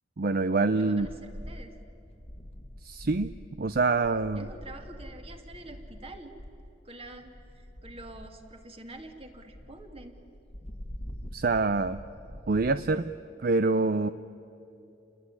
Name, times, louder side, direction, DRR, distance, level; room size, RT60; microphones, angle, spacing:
voice 1, 0.2-1.1 2.8-3.3 3.6-4.5 11.3-12.0 12.5-13.1 13.4-14.1, right 3 dB, 55° right, 12 dB, 0.6 m, -25 dB
voice 2, 0.7-1.7 4.4-6.3 6.8-10.1, right 2 dB, 30° right, 5 dB, 2.4 m, -46 dB
sound 1, 1.0-13.1, equal, 35° left, 1.5 m, -45 dB
29.0 x 20.0 x 9.7 m, 2.8 s
head